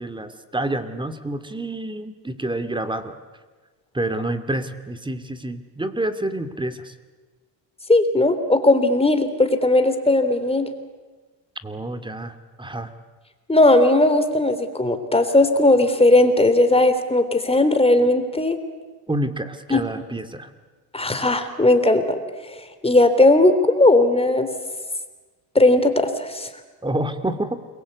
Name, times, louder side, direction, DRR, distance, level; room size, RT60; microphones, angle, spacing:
voice 1, 0.0-3.2 3.9-6.9 11.6-12.9 19.1-20.5 26.8-27.6, right 1 dB, 10° right, 10 dB, 2.3 m, -28 dB
voice 2, 7.9-10.7 13.5-18.6 19.7-19.8 20.9-24.5 25.5-26.5, left 2 dB, 10° left, 8 dB, 3.4 m, -17 dB
29.0 x 22.5 x 8.4 m, 1.3 s
supercardioid pair, 95°, 48 cm